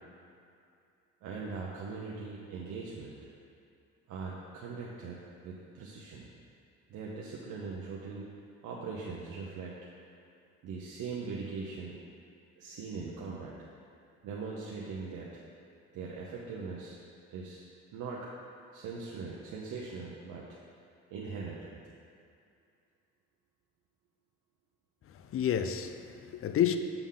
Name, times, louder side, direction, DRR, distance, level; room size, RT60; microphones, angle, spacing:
voice 1, 1.2-3.2 4.1-6.3 6.9-8.3 8.6-9.8 10.6-12.0 12.6-13.6 14.2-15.3 15.9-17.0 17.3-17.6 17.9-18.3 18.7-20.5 21.1-21.8, right 4 dB, 85° right, 0.8 m, -40 dB
voice 2, 25.1-26.8, left 9 dB, 50° left, 0.5 m, -30 dB
7.0 x 3.6 x 5.6 m
cardioid pair, 90°, 30 cm